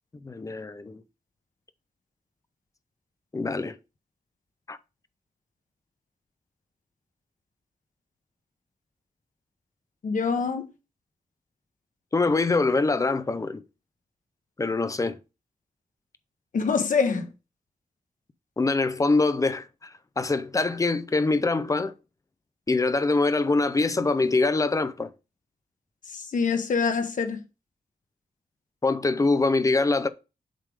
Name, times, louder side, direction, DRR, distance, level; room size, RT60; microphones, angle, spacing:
voice 1, 0.2-1.0 3.3-3.8 4.7-4.8 12.1-13.6 14.6-15.2 18.6-21.9 22.7-25.1 28.8-30.1, left 3 dB, 20° left, 0.5 m, -24 dB
voice 2, 10.0-10.7 16.5-17.3 26.1-27.4, left 5 dB, 60° left, 1.1 m, -25 dB
7.5 x 3.6 x 4.8 m
wide cardioid pair, 155°, 15 cm